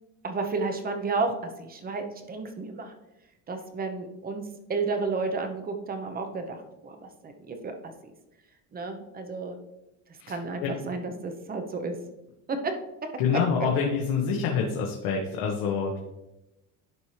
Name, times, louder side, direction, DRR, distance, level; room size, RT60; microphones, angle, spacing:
voice 1, 0.2-2.9 3.5-8.1 8.7-9.6 10.3-12.0 12.5-12.7, right 3 dB, 25° right, 6 dB, 0.8 m, -32 dB
voice 2, 13.2-16.0, left 6 dB, 75° left, -1 dB, 1.2 m, -26 dB
11.0 x 4.4 x 3.2 m, 0.95 s
cardioid pair, 145°, 36 cm